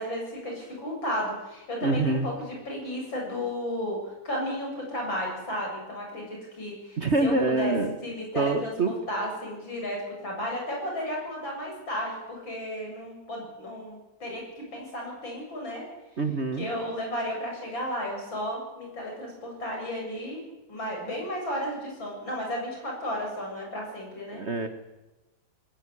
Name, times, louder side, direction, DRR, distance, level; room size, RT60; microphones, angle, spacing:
voice 1, 0.0-4.0 4.2-7.7 8.0-15.8 16.6-20.4 20.7-24.4, equal, 75° left, 0 dB, 8.1 m, -33 dB
voice 2, 1.8-2.3 7.0-8.0 8.3-8.9 16.2-16.7 24.3-24.7, right 3 dB, 40° right, 8 dB, 1.5 m, -25 dB
20.5 x 14.5 x 10.0 m, 1.0 s
omnidirectional pair, 2.1 m